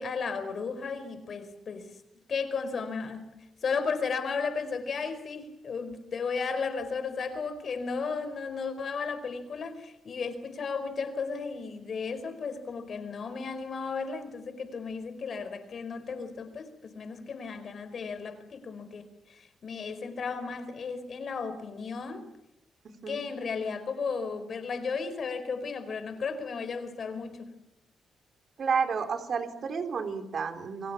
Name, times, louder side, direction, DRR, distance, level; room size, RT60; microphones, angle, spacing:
voice 1, 0.0-2.0 2.3-3.3 3.6-22.3 23.1-27.5, left 5 dB, 40° left, 11 dB, 4.7 m, -34 dB
voice 2, 22.8-23.2 28.6-30.9, right 6 dB, 45° right, 7 dB, 3.7 m, -31 dB
29.5 x 23.5 x 7.4 m, 0.87 s
cardioid pair, 155°, 0 cm